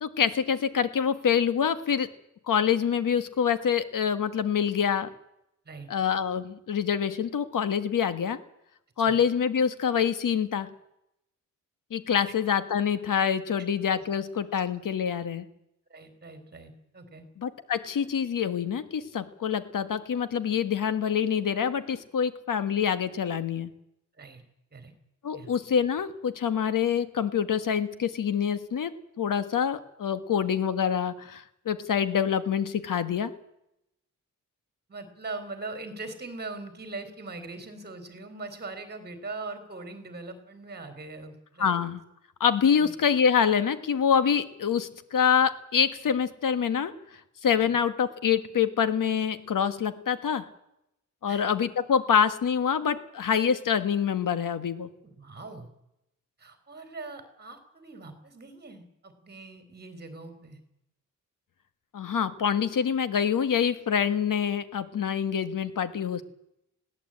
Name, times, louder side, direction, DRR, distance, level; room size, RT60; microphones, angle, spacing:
voice 1, 0.0-2.1 2.5-5.1 5.9-8.4 9.0-10.7 11.9-15.4 17.4-23.7 25.2-28.9 29.2-33.3 41.6-42.0 42.4-46.9 47.4-50.4 51.2-54.9 61.9-66.2, left 7 dB, 75° left, 12 dB, 1.5 m, -26 dB
voice 2, 15.9-17.3 24.2-24.4 24.7-24.9 25.3-25.5 34.9-41.8 42.7-42.9 47.6-47.8 51.3-51.5 55.0-55.7 56.4-60.6, right 3 dB, 30° right, 8 dB, 3.4 m, -41 dB
21.0 x 16.5 x 8.7 m, 0.83 s
wide cardioid pair, 180°, 32 cm